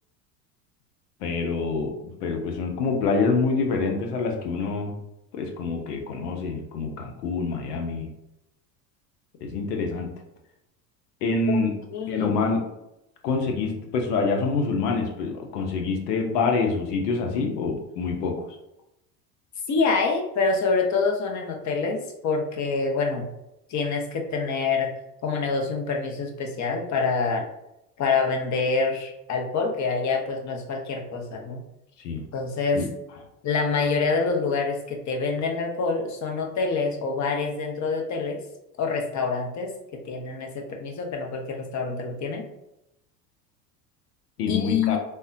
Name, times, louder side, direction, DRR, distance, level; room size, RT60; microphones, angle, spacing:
voice 1, 1.2-5.0 5.3-8.1 9.4-10.1 11.2-11.7 12.1-12.7 13.2-18.4 32.0-32.2 32.7-32.9 44.4-45.0, left 4 dB, 80° left, 3 dB, 0.8 m, -26 dB
voice 2, 11.9-12.3 19.7-23.3 23.7-24.9 25.2-27.5 28.0-31.6 32.3-32.8 33.4-38.4 38.8-39.7 40.1-42.5 44.5-45.0, left 4 dB, 40° left, 2 dB, 0.8 m, -26 dB
3.4 x 2.2 x 2.7 m, 0.86 s
hypercardioid pair, 85°, 46 cm